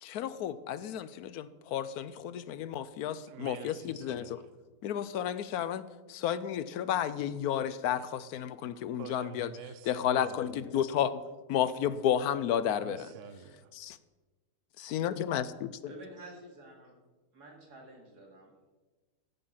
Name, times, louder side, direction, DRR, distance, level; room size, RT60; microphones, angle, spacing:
voice 1, 0.0-4.4 4.8-9.5 9.9-11.2 11.5-13.1 13.8-14.0 14.8-15.7, left 9 dB, 75° left, 1.0 m, -32 dB
voice 2, 3.3-4.5 9.0-10.8 12.8-13.7, right 7 dB, 60° right, 0.9 m, -48 dB
voice 3, 15.8-17.0 17.3-18.7, right 1 dB, 75° right, 2.9 m, -50 dB
15.0 x 7.0 x 5.7 m
omnidirectional pair, 1.7 m